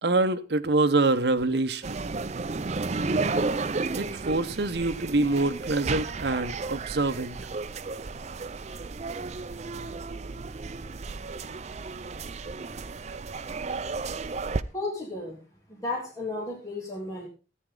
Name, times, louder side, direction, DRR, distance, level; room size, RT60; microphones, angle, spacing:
voice 1, 0.0-2.0 4.0-7.4, right 2 dB, 65° right, 0.8 m, -25 dB
sound 1, 1.8-14.6, right 3 dB, 40° right, 0.5 m, -33 dB
voice 2, 14.7-15.4 15.7-17.3, left 2 dB, 20° left, 2.8 m, -33 dB
14.0 x 9.2 x 3.7 m
head